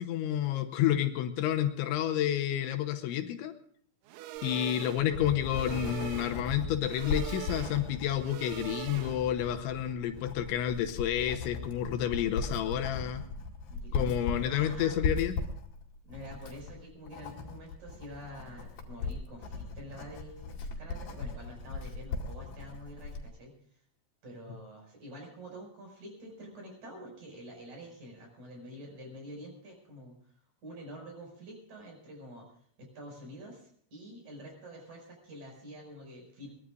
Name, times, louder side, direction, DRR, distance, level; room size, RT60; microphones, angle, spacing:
voice 1, 0.0-3.5 4.4-13.2 13.9-15.4, left 11 dB, 80° left, 7 dB, 3.3 m, -30 dB
sound 1, 4.1-9.5, right 14 dB, 85° right, 3.3 m, -43 dB
Writing, 4.5-23.3, left 4 dB, 55° left, 3.9 m, -38 dB
voice 2, 13.7-15.0 16.0-23.6 24.2-30.2 30.6-36.5, equal, 40° right, 1 dB, 7.0 m, -47 dB
22.5 x 19.5 x 2.5 m, 0.62 s
omnidirectional pair, 5.4 m